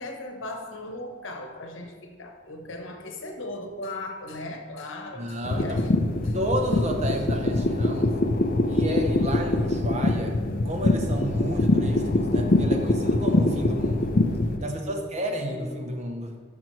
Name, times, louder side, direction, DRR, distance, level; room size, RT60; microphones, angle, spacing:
voice 1, 0.0-6.0 6.2-6.4 14.6-16.0, left 1 dB, 80° left, 4 dB, 1.0 m, -38 dB
voice 2, 5.1-5.8 6.3-8.1 8.7-10.4 10.6-14.1 14.6-16.3, equal, 35° right, 3 dB, 0.8 m, -31 dB
sound 1, 5.4-14.6, left 2 dB, 45° left, 0.5 m, -24 dB
12.0 x 6.0 x 3.2 m, 1.5 s
head